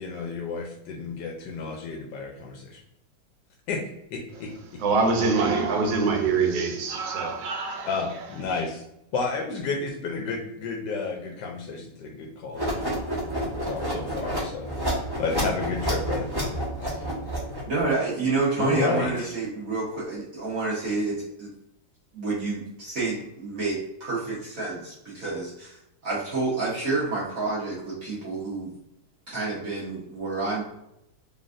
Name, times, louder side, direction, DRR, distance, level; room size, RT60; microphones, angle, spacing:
voice 1, 0.0-2.8 3.7-3.8 4.1-4.5 7.8-8.8 9.1-12.8 13.3-16.3 16.8-17.1 18.6-19.3, left 4 dB, 80° left, 1 dB, 1.2 m, -31 dB
voice 2, 4.8-8.2, right 4 dB, 85° right, 2 dB, 1.4 m, -24 dB
sound 1, 12.5-17.8, equal, 15° right, 1.0 m, -29 dB
voice 3, 17.7-21.5 22.1-25.8 26.0-28.7 29.3-30.6, right 3 dB, 55° right, -7 dB, 1.3 m, -29 dB
4.0 x 3.3 x 2.5 m, 0.83 s
omnidirectional pair, 1.9 m